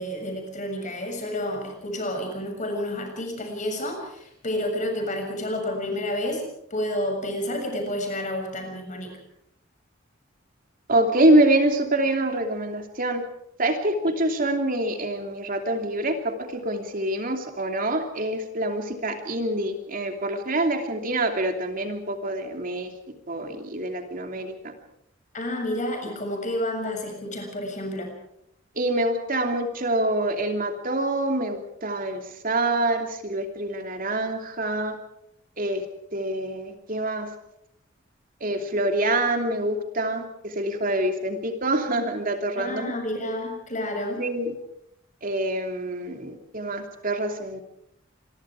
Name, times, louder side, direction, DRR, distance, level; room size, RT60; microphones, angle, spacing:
voice 1, 0.0-9.2 25.3-28.1 42.6-44.2, left 1 dB, 40° left, 4 dB, 7.2 m, -30 dB
voice 2, 10.9-13.2 13.6-22.9 23.3-24.7 28.8-35.0 35.6-35.8 36.1-37.3 38.4-42.9 44.2-44.5 45.2-47.6, right 1 dB, 45° right, 4 dB, 2.9 m, -25 dB
27.0 x 23.0 x 4.9 m, 0.77 s
head